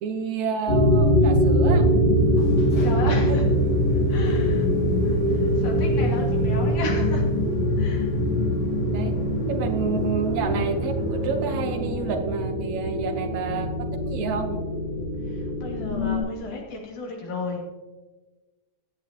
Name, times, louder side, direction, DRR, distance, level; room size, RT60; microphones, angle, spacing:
voice 1, 0.0-1.9 3.1-3.4 8.9-9.1 9.5-14.6, right 5 dB, 70° right, 6 dB, 2.3 m, -29 dB
sound 1, 0.7-16.2, equal, 35° left, 3.5 m, -23 dB
sound 2, 2.0-12.3, equal, 55° left, 2.9 m, -40 dB
voice 2, 2.8-3.5 4.1-4.7 5.0-7.2 7.8-8.2 15.3-17.6, left 2 dB, 75° left, 0 dB, 3.8 m, -34 dB
16.0 x 10.5 x 3.0 m, 1.2 s
omnidirectional pair, 3.5 m